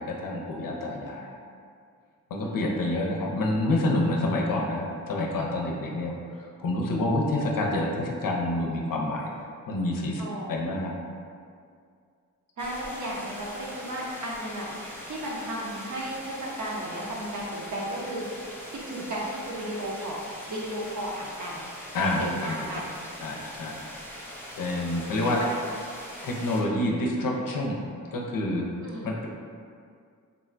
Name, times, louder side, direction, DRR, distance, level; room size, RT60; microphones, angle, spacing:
voice 1, 0.0-1.3 2.3-9.3 9.7-10.2 10.5-10.9 21.9-22.5 23.2-23.8 24.6-25.4 26.2-27.8 28.1-28.7 29.0-29.3, left 1 dB, 70° left, -1 dB, 0.5 m, -28 dB
voice 2, 2.4-2.8 10.2-10.5 12.6-14.7 15.0-18.3 18.7-20.2 20.5-21.6 22.1-22.9 25.1-25.5 28.8-29.2, right 1 dB, 55° right, -4 dB, 0.7 m, -34 dB
sound 1, 12.6-26.6, equal, 5° left, 0.6 m, -42 dB
3.7 x 2.1 x 2.4 m, 2.2 s
cardioid pair, 55°, 35 cm